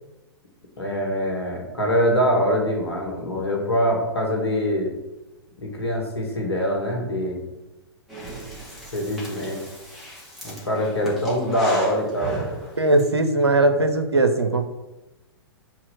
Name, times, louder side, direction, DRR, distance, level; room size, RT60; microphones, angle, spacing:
voice 1, 0.8-4.9 5.6-7.4 8.9-9.6 10.4-12.4, equal, 75° left, 1 dB, 2.0 m, -24 dB
Breathing, 8.1-13.1, equal, ahead, 2.4 m, -34 dB
voice 2, 12.8-14.7, right 2 dB, 85° right, 7 dB, 0.9 m, -19 dB
4.9 x 4.4 x 6.0 m, 0.99 s
figure-of-eight pair, 105°, 13 cm